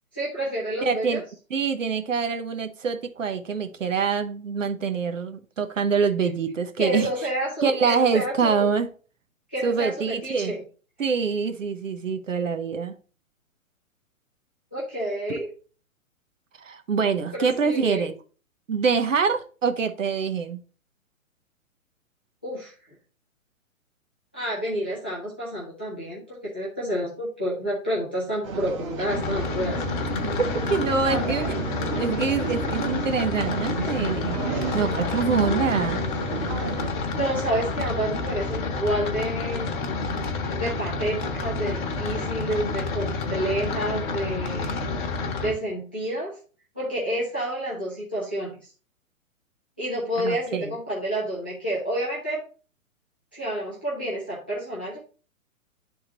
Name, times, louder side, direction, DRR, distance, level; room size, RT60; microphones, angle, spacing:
voice 1, 0.1-1.2 6.8-8.7 9.5-10.6 14.7-15.5 17.3-18.1 22.4-22.7 24.3-29.8 31.0-31.5 37.2-39.7 40.5-44.8 45.4-46.4 46.7-48.6 49.8-52.4 53.3-55.0, right 1 dB, 10° left, -9 dB, 0.4 m, -29 dB
voice 2, 0.8-1.2 1.5-7.1 7.6-8.9 9.6-10.5 11.0-13.0 16.6-18.1 18.7-20.6 30.7-31.4 31.9-34.4 34.7-36.0 50.2-50.7, right 5 dB, 65° right, 7 dB, 0.9 m, -25 dB
sound 1, 28.4-36.9, right 4 dB, 25° right, 0.7 m, -32 dB
sound 2, 29.1-45.5, left 3 dB, 35° left, 1.0 m, -29 dB
10.5 x 3.6 x 3.0 m, 0.38 s
figure-of-eight pair, 120°, 41 cm